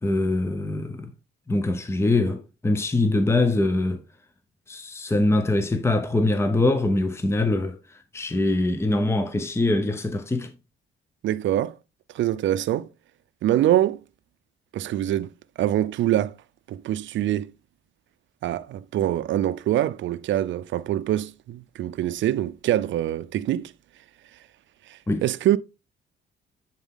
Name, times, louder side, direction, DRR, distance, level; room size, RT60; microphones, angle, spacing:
voice 1, 0.0-1.1 1.5-4.0 4.7-10.5 25.1-25.2, left 2 dB, 15° left, 0.8 m, -23 dB
voice 2, 11.2-11.7 12.1-12.9 13.4-14.0 14.7-15.3 15.6-16.3 16.7-17.5 18.4-23.7 25.2-25.6, right 12 dB, 70° right, 0.6 m, -24 dB
10.5 x 4.5 x 3.7 m
cardioid pair, 90°, 20 cm